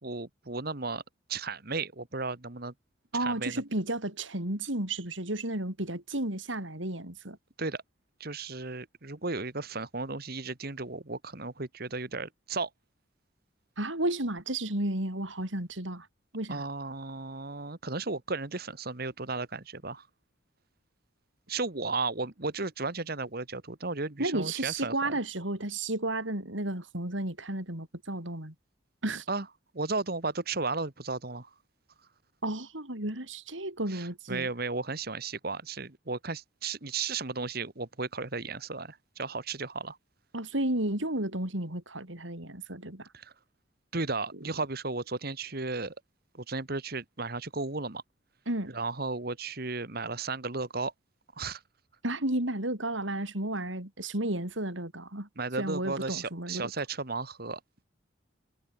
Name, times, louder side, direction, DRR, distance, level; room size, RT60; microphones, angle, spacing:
voice 1, 0.0-1.0 1.3-2.7 3.2-3.6 7.6-7.8 8.2-12.7 16.5-20.1 21.5-25.1 29.3-29.5 29.7-31.5 33.9-40.0 43.1-43.3 43.9-45.9 46.3-48.0 48.7-50.9 51.4-51.6 55.3-57.8, right 3 dB, 50° right, 1.7 m, -34 dB
voice 2, 3.1-7.4 13.8-16.1 16.3-16.6 24.2-28.5 29.0-29.2 32.4-34.5 40.3-43.1 48.5-48.8 52.0-55.3 55.6-56.7, right 1 dB, 80° right, 5.9 m, -32 dB
head